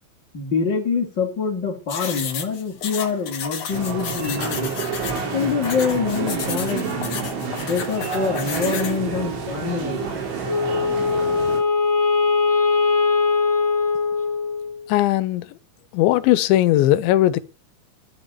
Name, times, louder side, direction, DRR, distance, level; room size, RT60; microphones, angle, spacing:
voice 1, 0.3-4.7 5.3-6.9 7.6-10.3, left 5 dB, 25° left, 3.1 m, -25 dB
sound 1, 1.9-9.0, left 8 dB, 55° left, 1.8 m, -32 dB
sound 2, 3.7-11.6, right 5 dB, 80° right, 6.2 m, -28 dB
Wind instrument woodwind instrument, 10.4-14.9, left 4 dB, 20° right, 3.6 m, -21 dB
voice 2, 14.9-15.5 15.9-17.4, left 14 dB, 80° left, 3.2 m, -18 dB
11.5 x 10.0 x 8.0 m
omnidirectional pair, 5.3 m